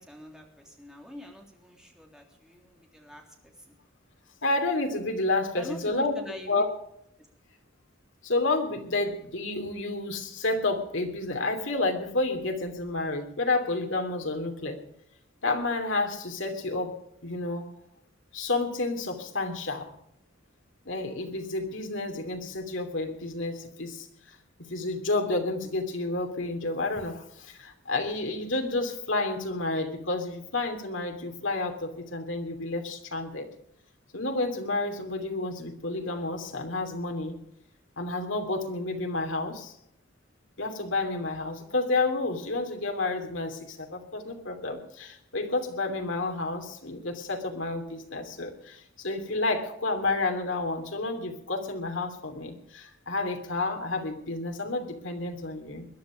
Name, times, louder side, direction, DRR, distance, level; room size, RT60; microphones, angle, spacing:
voice 1, 0.0-3.7 5.5-6.6 7.2-7.3, equal, 5° right, 1 dB, 3.3 m, -45 dB
voice 2, 4.4-6.1 6.5-6.7 8.2-14.8 15.4-17.7 18.3-19.9 20.8-33.5 34.1-37.3 38.0-39.7 40.6-55.9, left 2 dB, 70° left, 4 dB, 2.9 m, -30 dB
21.5 x 11.0 x 5.1 m, 0.74 s
head